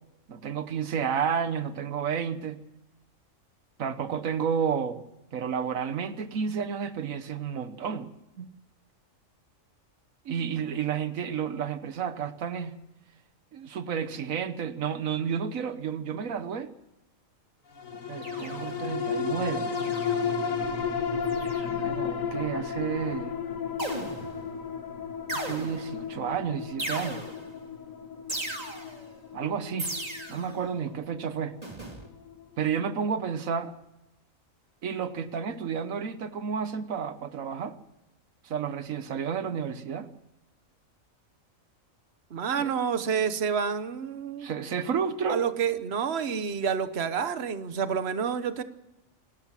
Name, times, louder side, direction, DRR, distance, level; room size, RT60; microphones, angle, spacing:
voice 1, 0.3-2.6 3.8-5.0 5.3-8.1 8.4-8.5 10.2-12.8 13.5-16.7 18.1-19.7 21.4-23.4 25.3-27.2 29.3-29.9 30.3-31.6 32.6-33.7 34.8-37.7 38.4-40.1 42.6-42.8 44.4-45.4, right 7 dB, 85° right, 11 dB, 1.4 m, -31 dB
sound 1, 17.8-32.4 32.9-33.0, left 6 dB, 85° left, 1.9 m, -33 dB
sound 2, 18.2-18.9 19.7-20.4 21.3-21.8 23.8-24.5 25.3-26.0 26.8-27.6 28.3-29.1 29.8-30.6 31.6-32.1, right 1 dB, 30° right, 2.8 m, -37 dB
voice 2, 42.3-44.5 45.3-48.6, right 7 dB, 55° right, 11 dB, 1.3 m, -29 dB
27.5 x 13.0 x 7.5 m, 0.92 s
omnidirectional pair, 1.4 m